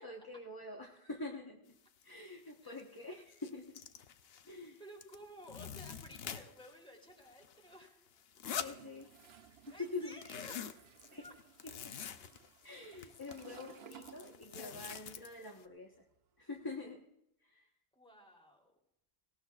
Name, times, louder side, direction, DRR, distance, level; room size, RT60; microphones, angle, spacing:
voice 1, 0.0-1.7 2.0-3.8 4.4-4.8 8.5-9.1 9.7-10.2 11.1-11.3 11.6-11.9 12.6-16.0 16.4-17.0 17.4-17.7, left 3 dB, 20° left, 1 dB, 1.2 m, -46 dB
sound 1, 2.0-2.1 2.5-2.8 3.1-4.7 5.0-6.8 7.1-9.5 9.8-15.7, left 8 dB, 70° left, 0.9 m, -47 dB
voice 2, 4.8-8.1 8.6-8.7 9.7-10.5 11.1-11.3 17.9-18.7, equal, 5° left, -1 dB, 3.2 m, -54 dB
Toilet flush, 8.5-14.9 15.2-16.8, right 9 dB, 70° right, 1.0 m, -59 dB
18.5 x 18.5 x 2.4 m, 0.81 s
omnidirectional pair, 1.1 m